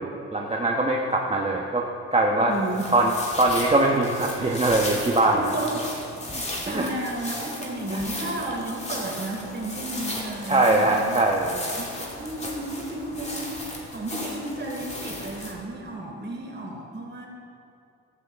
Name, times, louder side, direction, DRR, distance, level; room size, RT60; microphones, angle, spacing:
voice 1, 0.0-1.8 2.1-2.5 2.9-3.1 3.4-5.4 6.6-6.9 7.9-8.0 10.5-11.5, right 2 dB, 20° right, -1 dB, 1.1 m, -22 dB
voice 2, 2.4-2.8 5.3-5.7 6.7-11.2 11.5-17.3, right 1 dB, 35° right, -1 dB, 3.4 m, -33 dB
sound 1, 2.5-15.5, left 1 dB, 20° left, 2.6 m, -36 dB
15.0 x 13.5 x 3.6 m, 2.6 s
cardioid pair, 90°, 30 cm